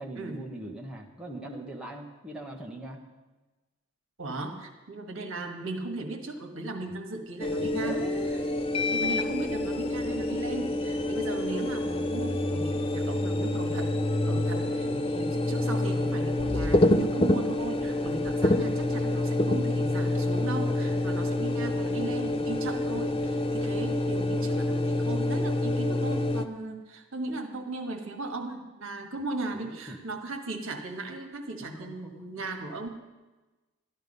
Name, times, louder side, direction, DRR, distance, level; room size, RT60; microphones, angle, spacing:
voice 1, 0.0-3.0 6.9-7.0 7.6-8.4 14.8-15.3 29.5-30.0 31.7-32.1, right 2 dB, 5° right, -2 dB, 1.2 m, -41 dB
voice 2, 4.2-8.0 8.9-13.9 14.2-32.9, right 2 dB, 65° right, 5 dB, 1.5 m, -37 dB
sound 1, 7.4-26.4, left 1 dB, 25° left, 0.5 m, -27 dB
sound 2, 8.6-8.9 9.2-10.9 11.7-12.1 12.4-12.7 13.4-14.4 15.8-19.4 19.7-20.7, left 1 dB, 35° right, 1.4 m, -44 dB
13.0 x 11.5 x 5.4 m, 1.2 s
head